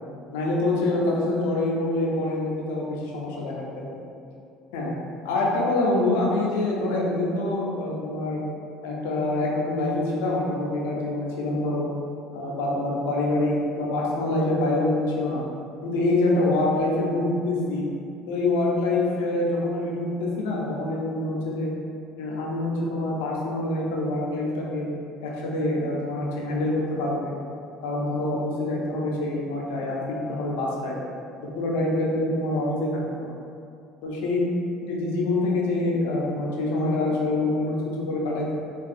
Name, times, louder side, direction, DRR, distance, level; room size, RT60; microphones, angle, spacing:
voice 1, 0.3-3.9 4.7-4.9 5.2-8.4 8.8-11.9 12.3-15.4 15.8-17.8 18.3-21.7 22.2-24.9 25.2-27.4 27.8-31.0 31.6-33.3 34.0-34.5 34.8-38.5, left 2 dB, 85° left, -3 dB, 0.5 m, -25 dB
3.4 x 2.3 x 2.5 m, 2.5 s
supercardioid pair, 85°, 0 cm